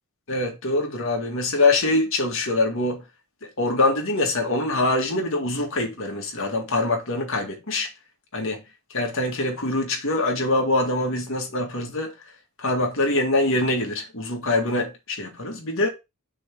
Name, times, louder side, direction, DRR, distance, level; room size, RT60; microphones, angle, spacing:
voice 1, 0.3-3.0 3.6-7.9 8.3-8.6 8.9-12.1 12.6-15.9, left 2 dB, 60° left, 2.1 m, -24 dB
6.2 x 3.5 x 6.0 m
head